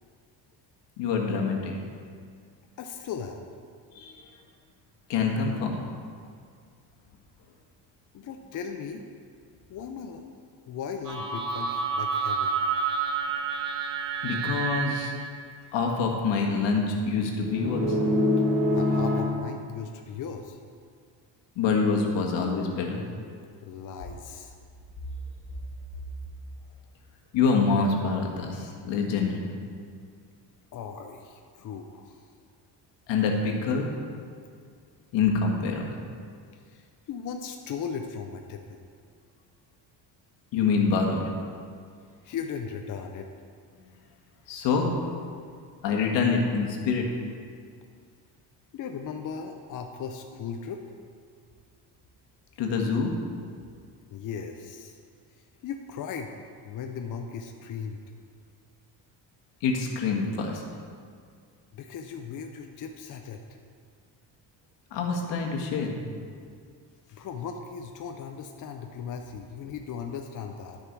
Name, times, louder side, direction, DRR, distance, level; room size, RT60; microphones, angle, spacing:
voice 1, 1.0-1.7 3.9-4.2 5.1-5.8 14.2-15.1 15.7-18.0 21.6-23.0 27.3-29.4 33.1-33.9 35.1-35.9 40.5-41.2 44.5-44.9 45.8-47.1 52.6-53.1 59.6-60.6 64.9-66.0, left 4 dB, 75° left, 0 dB, 1.7 m, -26 dB
voice 2, 2.8-3.4 8.1-9.0 9.7-10.2 10.7-12.5 18.7-20.6 23.6-24.5 30.7-32.2 36.7-38.8 42.2-43.3 48.7-50.8 54.1-55.0 55.6-56.3 56.6-58.0 61.7-63.4 67.1-70.8, left 6 dB, 45° left, 4 dB, 0.7 m, -37 dB
sound 1, 11.1-15.3 17.4-19.2, right 1 dB, 50° right, 2.1 m, -27 dB
11.0 x 6.7 x 4.7 m, 2.1 s
cardioid pair, 120°, 43 cm